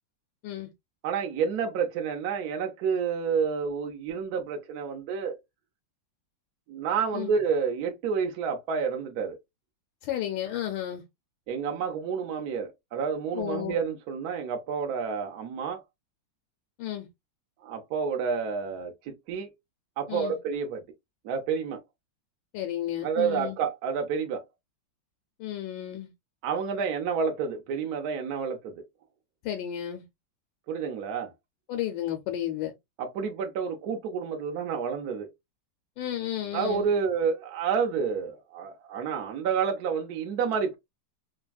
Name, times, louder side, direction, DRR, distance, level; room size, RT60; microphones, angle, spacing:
voice 1, 1.0-5.4 6.7-9.4 11.5-15.8 17.6-19.5 20.0-20.8 21.2-21.8 23.0-24.4 26.4-28.8 30.7-31.3 33.0-35.3 36.5-40.8, right 6 dB, 65° right, 1.0 m, -29 dB
voice 2, 10.0-11.0 13.3-13.8 16.8-17.1 20.1-20.4 22.5-23.6 25.4-26.1 29.4-30.0 31.7-32.7 36.0-36.9, left 11 dB, 80° left, 1.3 m, -32 dB
3.4 x 2.1 x 2.2 m
omnidirectional pair, 2.0 m